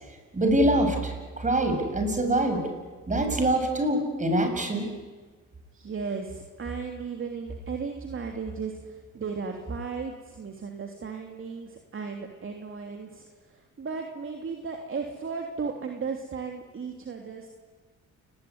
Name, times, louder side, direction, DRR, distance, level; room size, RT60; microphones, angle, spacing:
voice 1, 0.3-2.6 3.1-4.9, right 1 dB, 25° right, 5 dB, 7.5 m, -24 dB
voice 2, 5.7-17.5, right 5 dB, 45° right, 3 dB, 3.1 m, -35 dB
29.5 x 20.0 x 9.7 m, 1.4 s
cardioid pair, 90°, 30 cm